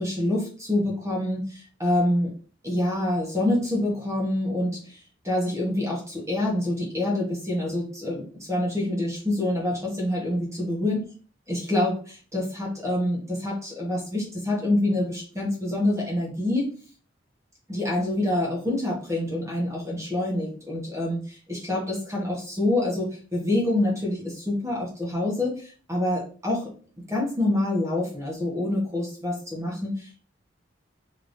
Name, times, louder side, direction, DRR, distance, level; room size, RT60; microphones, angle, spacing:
voice 1, 0.0-2.3 2.6-5.0 5.2-8.2 8.5-11.0 11.5-16.7 17.7-26.7 27.1-30.2, left 1 dB, 15° right, -4 dB, 1.1 m, -26 dB
3.5 x 3.3 x 2.6 m, 0.40 s
head